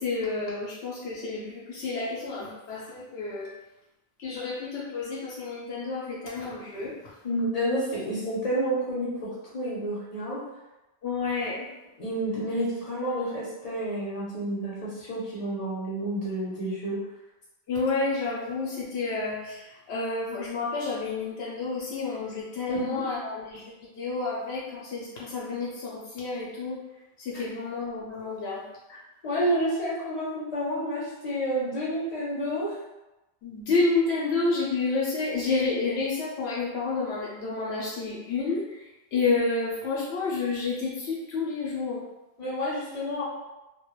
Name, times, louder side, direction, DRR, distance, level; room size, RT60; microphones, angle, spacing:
voice 1, 0.0-3.5 4.2-6.9 11.0-11.6 17.7-19.4 19.9-23.6 24.0-26.8 27.3-28.6 33.4-38.6 39.1-42.0, left 3 dB, 75° left, -5 dB, 0.8 m, -29 dB
voice 2, 7.2-10.4 12.0-17.0 22.7-23.3 27.3-27.5 28.9-32.7 42.4-43.2, right 1 dB, 45° left, -7 dB, 0.7 m, -30 dB
2.2 x 2.1 x 2.9 m, 0.99 s
omnidirectional pair, 1.1 m